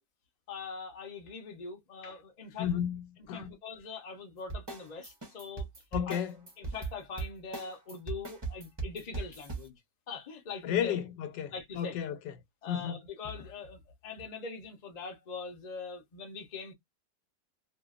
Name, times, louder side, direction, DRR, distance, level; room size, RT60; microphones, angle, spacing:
voice 1, 0.5-2.7 3.3-5.7 6.1-6.2 6.6-9.8 10.1-11.0 11.5-12.0 12.6-16.7, left 5 dB, 40° left, 0.6 m, -42 dB
voice 2, 2.6-3.5 5.9-6.3 10.6-12.3 12.7-13.0, left 9 dB, 85° left, 1.4 m, -33 dB
sound 1, 4.5-9.7, right 4 dB, 30° right, 0.5 m, -38 dB
2.7 x 2.5 x 2.4 m
omnidirectional pair, 1.9 m